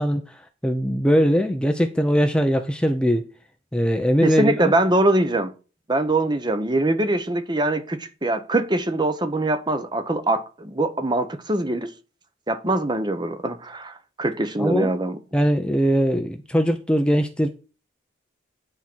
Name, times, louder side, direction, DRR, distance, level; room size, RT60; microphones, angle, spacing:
voice 1, 0.0-3.3 3.7-4.7 14.6-14.9 15.3-17.5, equal, 5° left, 0.7 m, -21 dB
voice 2, 4.2-5.5 5.9-11.9 12.5-15.2, right 2 dB, 20° right, 0.9 m, -23 dB
11.0 x 4.4 x 6.2 m
head